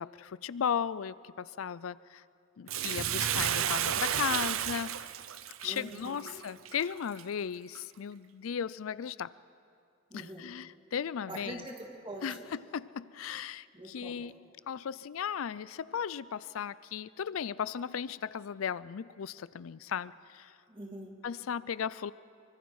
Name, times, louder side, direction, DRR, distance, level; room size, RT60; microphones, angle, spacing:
voice 1, 0.0-2.2 2.6-5.0 5.6-9.3 10.1-11.6 12.2-20.6 21.2-22.1, left 7 dB, 85° left, 19 dB, 0.4 m, -36 dB
Bathtub (filling or washing), 2.7-7.2 7.8-7.9, right 10 dB, 85° right, 0.7 m, -32 dB
voice 2, 5.6-6.5 10.1-10.5 11.3-12.5 13.7-14.3 20.7-21.2, right 1 dB, 25° right, 1 dB, 2.4 m, -44 dB
25.0 x 24.0 x 4.8 m, 2.4 s
head